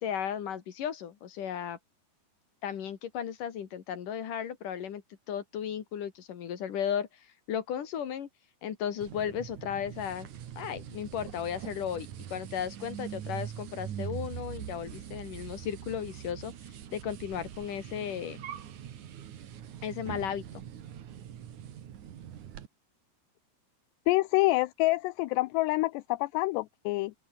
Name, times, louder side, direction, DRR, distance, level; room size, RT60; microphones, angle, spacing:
voice 1, 0.0-1.8 2.6-5.0 5.3-7.1 7.5-8.3 8.6-10.3 10.6-16.5 16.9-18.4 19.8-20.6, left 9 dB, 55° left, 3.2 m, -35 dB
sound 1, 9.0-22.7, right 10 dB, 55° right, 2.7 m, -43 dB
voice 2, 24.1-27.1, left 20 dB, 80° left, 2.8 m, -27 dB
open air
omnidirectional pair, 5.0 m